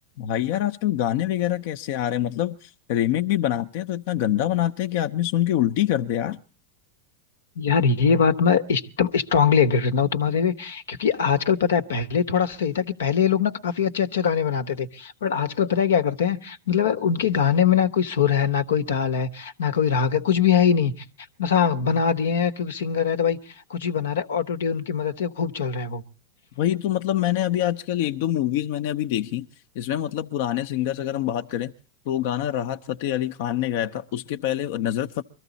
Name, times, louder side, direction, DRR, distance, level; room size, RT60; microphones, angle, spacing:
voice 1, 0.2-6.4 26.6-31.7 32.1-35.2, left 12 dB, 65° left, 0.7 m, -25 dB
voice 2, 7.6-21.0 21.4-26.0, left 7 dB, 85° left, 1.1 m, -22 dB
23.0 x 14.0 x 4.0 m
hypercardioid pair, 115°, 0 cm